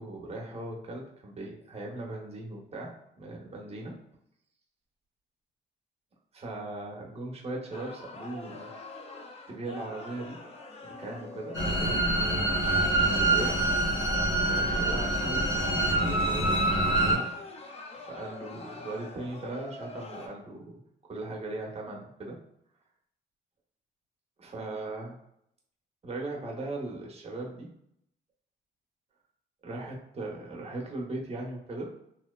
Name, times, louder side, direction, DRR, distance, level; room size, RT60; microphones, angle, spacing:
voice 1, 0.0-4.0 6.3-8.7 9.5-10.4 10.8-12.3 12.9-13.6 14.4-15.5 16.0-17.3 17.9-20.8 21.1-22.4 24.4-25.2 26.0-27.7 29.6-31.9, right 2 dB, 30° right, -1 dB, 0.7 m, -39 dB
sound 1, 7.7-20.3, left 2 dB, 30° left, 0.5 m, -44 dB
sound 2, 11.5-17.2, right 2 dB, 75° left, 0.7 m, -25 dB
2.8 x 2.0 x 2.2 m, 0.75 s
cardioid pair, 90°, 20 cm